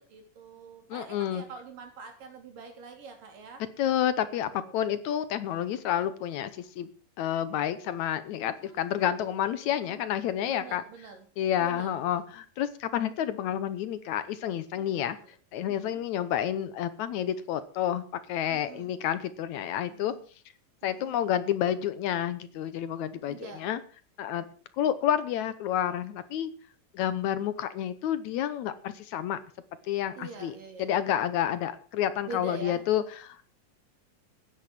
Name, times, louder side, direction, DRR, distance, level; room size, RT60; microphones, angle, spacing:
voice 1, 0.0-3.6 4.2-4.8 8.5-9.1 9.6-10.0 10.5-11.3 11.6-12.0 14.8-15.3 15.7-16.0 18.5-18.9 19.9-20.2 20.8-21.2 23.3-23.7 30.1-30.9 32.2-32.9, right 4 dB, 80° right, 4 dB, 4.9 m, -45 dB
voice 2, 0.9-1.4 3.8-6.9 7.2-10.8 11.4-15.2 15.5-20.1 20.8-23.8 24.2-24.5 24.8-26.5 26.9-29.4 29.9-30.5 30.8-33.5, left 10 dB, 70° left, 14 dB, 2.0 m, -29 dB
13.0 x 10.0 x 7.3 m, 0.42 s
omnidirectional pair, 3.8 m